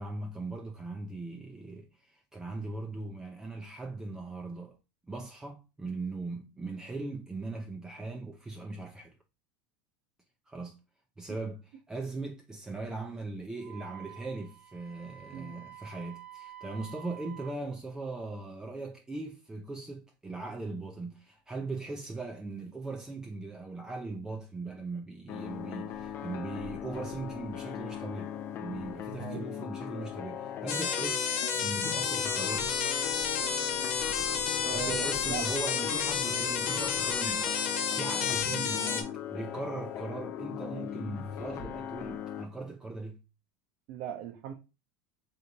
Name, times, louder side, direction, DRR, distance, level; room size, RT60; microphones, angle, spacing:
voice 1, 0.0-4.8 5.1-9.2 10.5-10.8 11.2-32.8 34.7-43.2, right 3 dB, 10° right, 0.5 m, -39 dB
Wind instrument woodwind instrument, 13.6-17.6, right 11 dB, 85° right, 1.2 m, -49 dB
sound 1, 25.3-42.4, left 9 dB, 45° left, 0.5 m, -39 dB
sound 2, 30.7-39.0, left 7 dB, 70° left, 0.8 m, -31 dB
voice 2, 34.6-35.4 36.3-36.4 43.9-44.5, right 10 dB, 60° right, 0.7 m, -38 dB
3.4 x 2.9 x 3.9 m
supercardioid pair, 125°, 6 cm